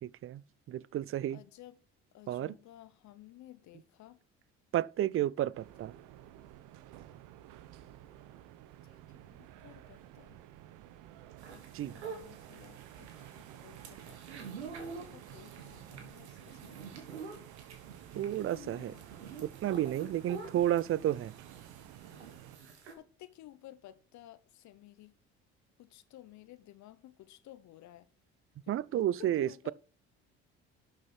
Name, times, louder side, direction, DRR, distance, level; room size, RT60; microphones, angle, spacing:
voice 1, 0.0-1.4 2.3-2.5 4.7-5.9 11.7-12.0 18.1-19.0 19.4-21.3 28.7-29.7, right 12 dB, 40° right, 0.5 m, -32 dB
voice 2, 1.3-1.7 2.1-4.2 8.8-9.0 9.3-10.4 11.5-14.2 14.7-16.8 18.1-19.0 23.0-25.1 25.8-28.1 28.9-29.7, left 14 dB, 60° left, 1.0 m, -54 dB
sound 1, 5.5-22.6, right 12 dB, 65° right, 1.0 m, -52 dB
sound 2, 11.4-22.9, right 4 dB, 90° right, 1.9 m, -48 dB
11.5 x 6.8 x 4.4 m
hypercardioid pair, 55°, 33 cm